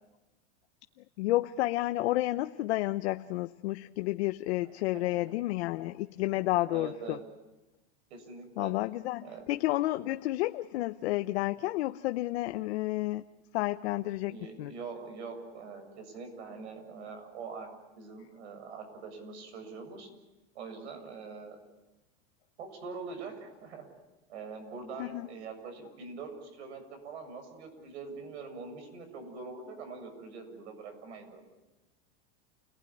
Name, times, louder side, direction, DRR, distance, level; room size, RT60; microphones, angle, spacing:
voice 1, 1.2-7.2 8.6-13.2 13.5-14.7 25.0-25.3, left 17 dB, 75° left, 9 dB, 0.9 m, -31 dB
voice 2, 4.6-5.4 6.3-7.2 8.1-8.7 9.2-9.5 14.3-17.7 18.0-20.1 20.5-21.6 22.6-23.9 24.3-31.4, right 4 dB, 90° right, 6 dB, 7.4 m, -44 dB
29.5 x 19.0 x 9.9 m, 1.1 s
supercardioid pair, 165°, 33 cm